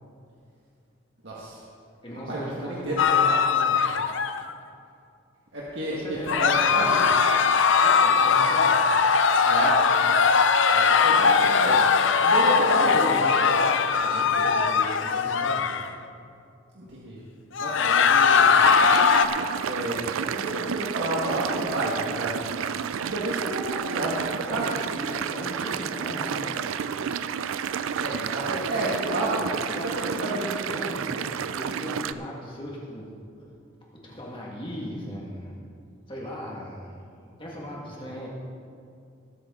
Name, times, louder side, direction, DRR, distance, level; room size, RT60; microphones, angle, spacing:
voice 1, 1.2-1.6 2.3-3.0 5.5-7.0 9.4-10.1 10.7-11.8 12.2-13.1 16.7-17.2 17.6-18.6 19.6-22.3 23.1-24.7 24.9-25.1 27.9-29.7 30.1-30.4, right 1 dB, 65° right, -6 dB, 1.6 m, -30 dB
voice 2, 2.0-3.9 5.9-6.9 7.8-8.8 12.5-15.7 24.5-26.6 29.7-33.1 34.0-35.5 36.1-38.3, equal, 25° left, -4 dB, 1.7 m, -37 dB
sound 1, 3.0-4.5 6.3-15.9 17.6-19.3, left 5 dB, 70° left, 0.6 m, -20 dB
sound 2, 18.6-32.1, right 7 dB, 80° right, 0.4 m, -31 dB
19.0 x 8.7 x 3.7 m, 2.4 s
head